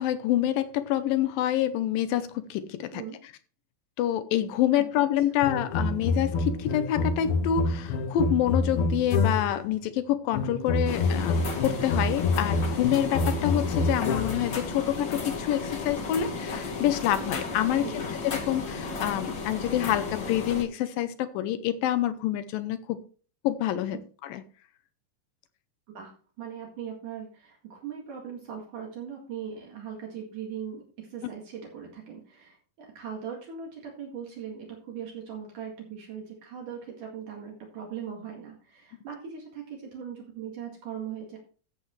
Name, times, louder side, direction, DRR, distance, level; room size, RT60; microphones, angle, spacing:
voice 1, 0.0-3.0 4.0-18.0 18.3-23.0 23.4-24.4, left 11 dB, 80° left, 2.5 m, -27 dB
sound 1, 5.4-9.7 10.3-14.6, left 3 dB, 65° left, 1.4 m, -27 dB
sound 2, 10.8-20.6, left 4 dB, 40° left, 1.8 m, -34 dB
voice 2, 17.8-18.1 25.9-41.4, right 8 dB, 65° right, 3.4 m, -40 dB
14.0 x 7.9 x 3.1 m
omnidirectional pair, 4.0 m